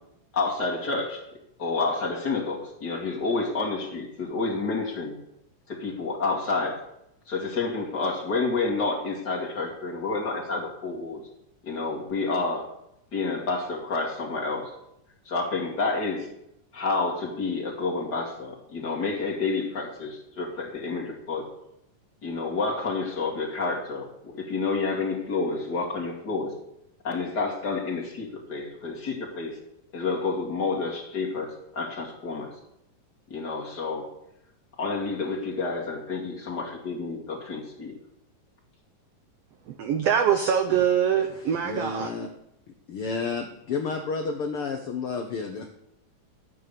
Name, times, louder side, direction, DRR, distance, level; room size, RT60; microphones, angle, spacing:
voice 1, 0.3-1.2 1.6-5.2 5.7-6.8 7.3-11.2 11.6-12.7 13.1-14.7 15.3-16.3 16.7-21.5 22.2-26.5 27.0-29.6 29.9-32.5 33.3-34.1 34.8-37.9, left 3 dB, 35° left, -1 dB, 2.4 m, -29 dB
voice 2, 39.7-42.1, right 8 dB, 85° right, 7 dB, 1.4 m, -24 dB
voice 3, 41.6-42.3 42.9-45.7, left 4 dB, 70° left, 4 dB, 1.3 m, -31 dB
12.5 x 9.3 x 6.9 m, 0.81 s
omnidirectional pair, 3.9 m